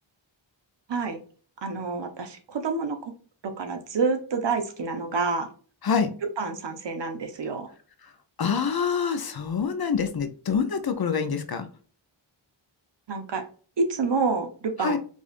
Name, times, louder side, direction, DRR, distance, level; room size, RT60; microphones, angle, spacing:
voice 1, 0.9-1.2 1.6-3.0 3.4-5.5 6.4-7.7 13.1-13.5 13.8-15.0, right 4 dB, 65° right, 6 dB, 0.9 m, -28 dB
voice 2, 8.4-11.7 14.8-15.0, left 6 dB, 50° left, 8 dB, 0.6 m, -26 dB
4.9 x 2.5 x 2.4 m, 0.41 s
wide cardioid pair, 115°, 47 cm